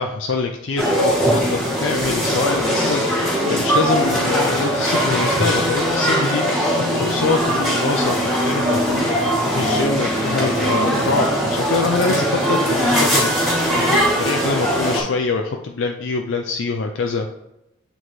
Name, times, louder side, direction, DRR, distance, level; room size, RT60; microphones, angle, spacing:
voice 1, 0.0-6.5 6.9-17.3, left 4 dB, 65° left, 3 dB, 0.4 m, -24 dB
sound 1, 0.8-15.0, equal, ahead, 1.7 m, -20 dB
7.9 x 3.9 x 3.1 m, 0.90 s
head